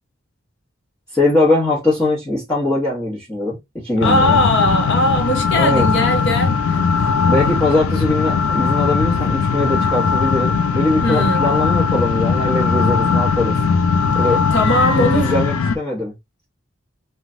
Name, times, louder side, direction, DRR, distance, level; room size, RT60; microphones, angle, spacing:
voice 1, 1.1-4.4 5.6-5.9 7.3-13.6 14.1-14.4 14.9-16.1, left 2 dB, 15° left, 0.9 m, -21 dB
sound 1, 4.0-15.8, left 5 dB, 85° left, 0.4 m, -18 dB
voice 2, 4.0-6.9 11.0-11.4 14.5-15.3, left 1 dB, 55° left, 0.8 m, -19 dB
3.1 x 2.2 x 2.5 m
head